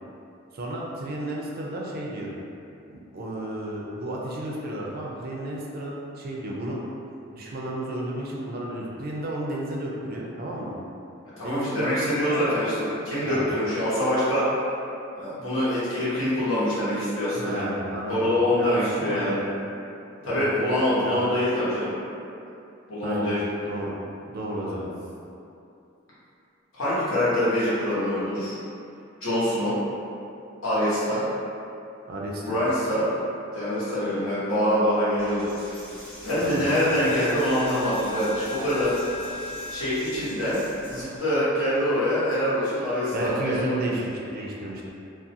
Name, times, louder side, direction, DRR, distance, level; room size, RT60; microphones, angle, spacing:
voice 1, 0.5-2.3 2.9-6.8 7.3-10.7 11.4-12.4 13.2-13.4 17.3-19.4 20.2-20.5 21.0-21.2 23.0-23.4 23.6-23.9 24.3-24.9 32.1-32.6 36.4-36.6 43.1-44.8, right 1 dB, 45° right, -3 dB, 0.4 m, -32 dB
voice 2, 11.4-14.4 15.2-17.7 18.1-19.3 20.2-21.9 22.9-23.4 24.5-24.8 26.7-28.6 29.2-29.7 30.6-31.2 32.4-33.0 33.5-35.5 36.2-38.9 39.7-40.6 40.9-43.7, left 1 dB, 75° left, -11 dB, 1.1 m, -25 dB
Coin (dropping), 35.2-41.2, left 2 dB, 25° left, 0.9 m, -39 dB
2.4 x 2.3 x 2.7 m, 2.6 s
head